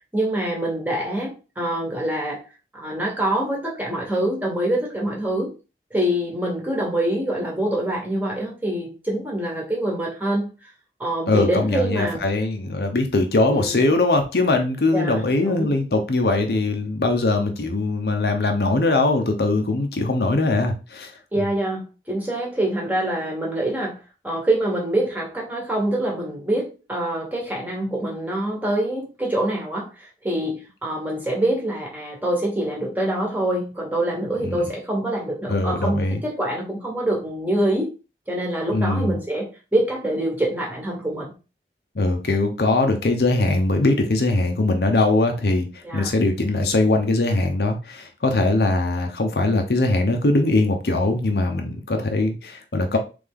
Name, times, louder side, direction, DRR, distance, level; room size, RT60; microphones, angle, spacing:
voice 1, 0.1-2.4 2.7-5.5 5.9-10.5 11.0-12.2 13.5-13.8 14.9-15.7 21.3-23.9 24.2-37.9 38.3-39.5 39.7-41.3 45.8-46.1, right 1 dB, 10° right, 1.2 m, -25 dB
voice 2, 11.3-21.1 34.4-34.7 35.5-36.2 38.7-39.2 41.9-53.0, left 2 dB, 60° left, 0.7 m, -21 dB
3.5 x 3.4 x 3.7 m
head